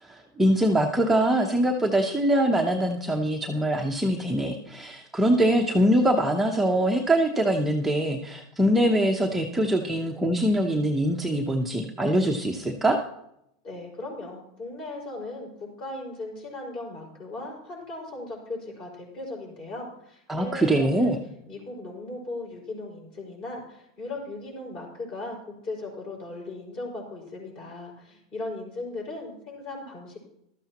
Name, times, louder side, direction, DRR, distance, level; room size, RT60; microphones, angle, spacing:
voice 1, 0.0-13.0 20.3-21.2, right 1 dB, 5° right, 0 dB, 0.9 m, -23 dB
voice 2, 13.6-21.2 21.5-30.2, left 2 dB, 35° left, -1 dB, 5.6 m, -37 dB
15.0 x 13.0 x 3.0 m, 0.78 s
supercardioid pair, 140°, 2 cm